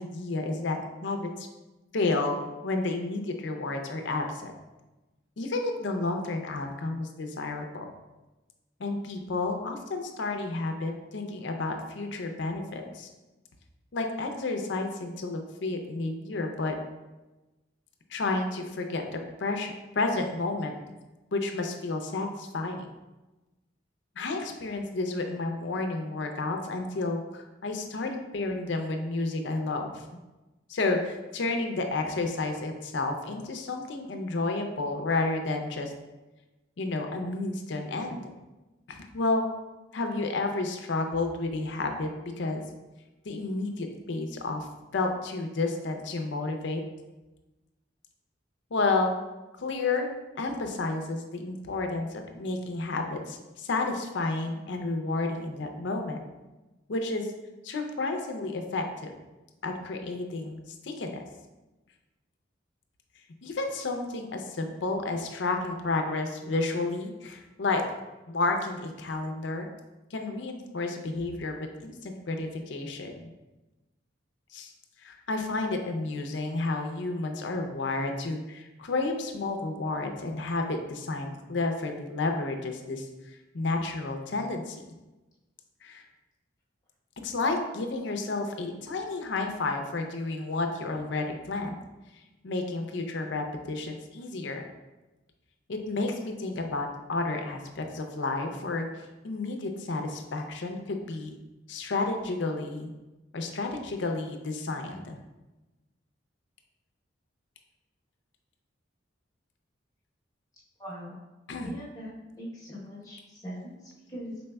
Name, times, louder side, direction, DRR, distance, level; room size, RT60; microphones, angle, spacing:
voice 1, 0.0-1.5 1.9-2.3 2.6-4.5 5.4-7.9 8.8-13.1 13.9-16.8 18.1-19.0 19.4-20.7 21.3-22.9 24.2-29.9 30.7-35.9 36.8-38.2 38.9-39.5 39.9-42.6 43.3-44.7 44.9-46.8 48.7-49.2 49.6-50.1 50.4-56.2 56.9-57.3 57.6-59.1 59.6-61.2 63.4-67.8 68.3-69.7 70.1-71.6 71.8-73.1 74.5-74.7 75.0-84.8 85.8-86.0 87.2-91.8 92.4-94.6 95.7-98.9 99.2-101.3 101.7-102.9 103.3-105.2 111.5-111.7, left 3 dB, 65° left, 4 dB, 0.5 m, -31 dB
voice 2, 110.8-111.2 111.6-114.4, equal, 20° left, -7 dB, 0.9 m, -41 dB
5.1 x 4.0 x 2.2 m, 1.1 s
head